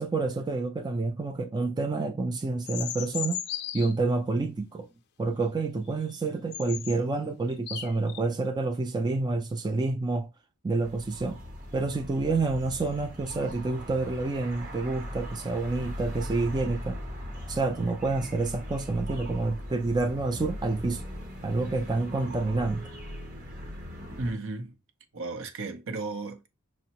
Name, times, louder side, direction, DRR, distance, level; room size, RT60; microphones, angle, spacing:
voice 1, 0.0-3.4 3.7-4.9 5.2-10.3 10.6-11.4 11.7-17.0 17.5-21.0 21.4-22.9, right 3 dB, 20° right, 0.3 m, -28 dB
sound 1, 2.7-3.9 6.1-6.2 6.5-7.0 7.5-8.2, left 10 dB, 50° left, 0.5 m, -35 dB
sound 2, 10.8-24.3, left 1 dB, 40° right, 1.0 m, -39 dB
voice 2, 24.2-24.8 25.1-26.5, right 3 dB, 65° right, 0.7 m, -34 dB
6.0 x 2.1 x 2.8 m
head